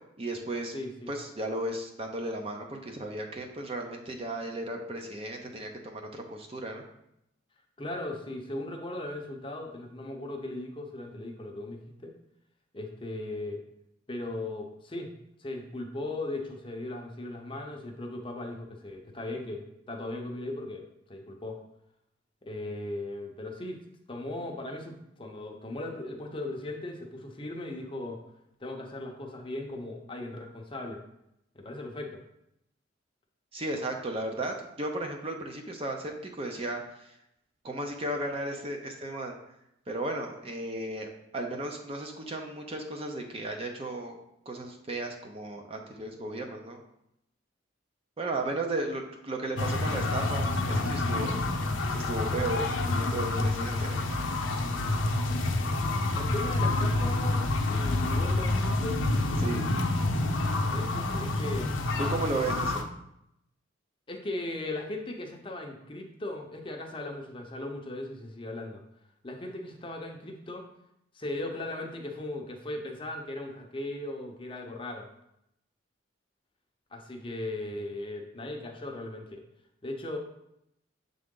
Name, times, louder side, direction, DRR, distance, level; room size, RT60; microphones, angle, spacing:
voice 1, 0.2-0.7 1.1-6.8 33.5-37.1 37.6-39.4 39.9-44.2 44.5-46.8 48.2-51.4 51.9-54.0 59.4-59.7 62.0-62.8, right 2 dB, 30° right, 2 dB, 0.6 m, -35 dB
voice 2, 0.7-1.1 7.8-12.1 12.7-13.6 14.1-15.1 15.4-21.6 22.4-23.8 24.1-28.2 28.6-31.0 31.5-32.2 56.1-59.0 60.7-61.7 64.1-68.8 69.2-70.6 71.1-75.1 76.9-79.4 79.8-80.2, left 2 dB, 25° left, 2 dB, 0.7 m, -38 dB
sound 1, 49.6-62.8, left 2 dB, 75° left, 0.6 m, -28 dB
6.8 x 3.8 x 3.7 m, 0.81 s
head